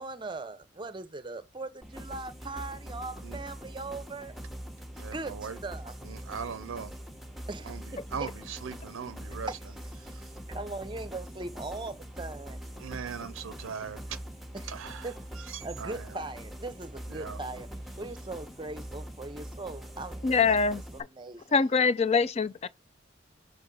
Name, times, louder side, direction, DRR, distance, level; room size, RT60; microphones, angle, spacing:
voice 1, 0.0-4.4 5.1-6.0 7.5-8.0 9.5-9.6 10.0-12.6 14.5-14.8 15.0-15.1 15.6-17.7 18.0-20.3 20.9-21.6 22.1-22.2, right 2 dB, 25° right, 0.6 m, -40 dB
sound 1, 1.8-21.0, equal, ahead, 0.9 m, -43 dB
voice 2, 5.0-5.6 6.0-6.9 7.6-7.8 8.1-9.5 10.0-10.2 12.8-14.2 14.6-16.2 17.1-17.4, right 6 dB, 85° right, 0.5 m, -40 dB
voice 3, 20.2-20.8 21.5-22.7, left 5 dB, 30° left, 0.4 m, -24 dB
6.9 x 4.0 x 3.8 m
head